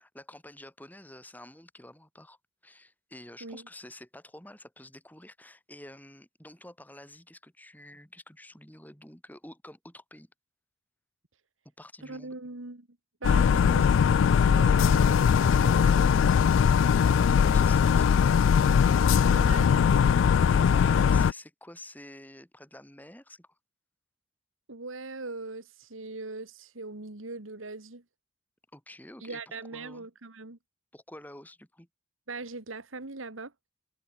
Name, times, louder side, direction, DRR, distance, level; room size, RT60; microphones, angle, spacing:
voice 1, 0.0-2.4 2.6-10.3 11.6-12.4 17.1-18.4 20.5-23.5 28.7-30.1 30.9-31.9, left 1 dB, 10° left, 7.5 m, -49 dB
voice 2, 12.0-12.9 13.2-16.4 19.3-19.9 24.7-28.0 29.2-30.6 32.3-33.5, right 3 dB, 85° right, 2.0 m, -40 dB
sound 1, 13.2-21.3, left 7 dB, 75° left, 0.3 m, -21 dB
head